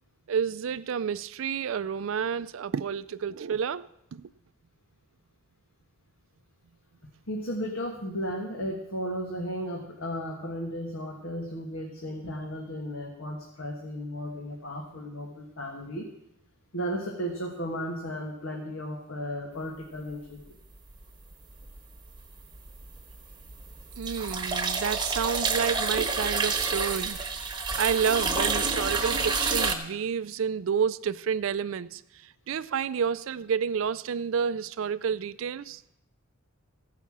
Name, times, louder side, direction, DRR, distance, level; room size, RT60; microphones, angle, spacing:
voice 1, 0.3-4.3 24.0-27.2 27.8-35.8, right 7 dB, 70° right, 0.4 m, -30 dB
voice 2, 7.3-16.1 16.7-20.6, equal, 75° left, 1.6 m, -35 dB
sound 1, 21.6-22.2 22.5-29.7, right 4 dB, 20° right, 1.2 m, -29 dB
15.5 x 5.7 x 7.2 m
head